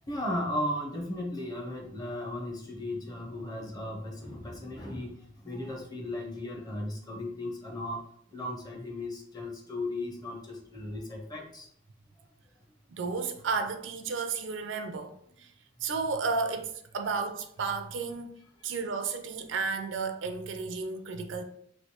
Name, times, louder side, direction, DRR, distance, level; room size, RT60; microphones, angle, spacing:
voice 1, 0.0-8.0 8.3-11.7, left 1 dB, 20° left, 0.6 m, -36 dB
voice 2, 12.9-15.5 15.8-18.4 18.6-21.4, right 4 dB, 65° right, 0.4 m, -33 dB
3.2 x 2.9 x 2.8 m
head